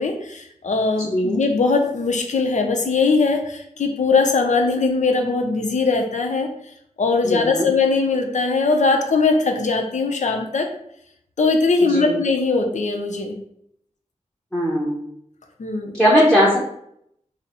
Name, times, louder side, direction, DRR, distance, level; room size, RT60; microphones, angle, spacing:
voice 1, 0.0-6.5 7.0-10.7 11.4-13.3 15.6-16.0, left 4 dB, 70° left, 4 dB, 0.6 m, -20 dB
voice 2, 1.1-1.4 7.3-7.6 11.9-12.1 14.5-15.0 16.0-16.6, equal, 5° left, -4 dB, 0.9 m, -18 dB
3.9 x 2.0 x 4.2 m, 0.72 s
wide cardioid pair, 70°, 13 cm